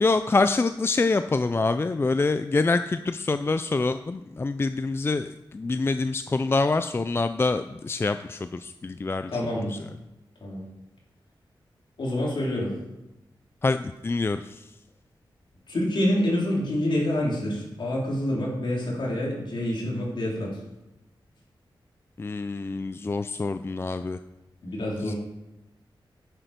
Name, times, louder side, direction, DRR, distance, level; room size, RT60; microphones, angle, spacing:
voice 1, 0.0-9.3 9.7-9.8 13.6-14.6 22.2-24.2 25.0-25.1, left 3 dB, 25° left, 10 dB, 0.4 m, -26 dB
voice 2, 9.3-9.8 10.4-10.6 12.0-12.7 15.7-20.5 24.6-25.2, left 1 dB, 65° left, -4 dB, 4.1 m, -27 dB
10.5 x 8.9 x 5.2 m, 0.94 s
wide cardioid pair, 120°, 9 cm